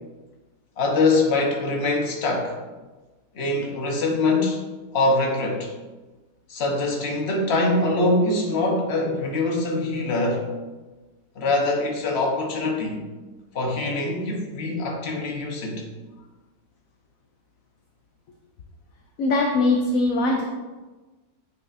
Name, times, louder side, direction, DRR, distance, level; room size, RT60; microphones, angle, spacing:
voice 1, 0.8-2.6 3.3-4.6 4.9-5.7 6.5-10.5 11.4-13.0 13.5-15.9, left 2 dB, 45° left, 0 dB, 1.1 m, -23 dB
voice 2, 19.2-20.4, left 2 dB, 65° left, 1 dB, 0.9 m, -21 dB
8.5 x 4.9 x 2.7 m, 1.2 s
omnidirectional pair, 1.8 m